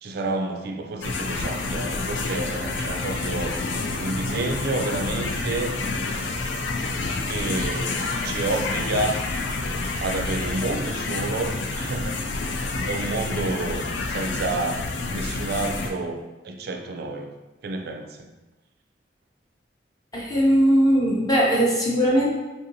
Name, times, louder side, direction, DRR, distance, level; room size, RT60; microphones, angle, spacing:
voice 1, 0.0-3.6 4.0-5.7 7.2-9.2 10.0-17.3 17.6-18.3, right 2 dB, 60° right, 5 dB, 0.3 m, -30 dB
sound 1, 1.0-15.9, left 3 dB, 90° left, 0.4 m, -28 dB
voice 2, 20.1-22.3, equal, 20° left, -5 dB, 0.5 m, -19 dB
3.6 x 2.8 x 2.6 m, 1.1 s
head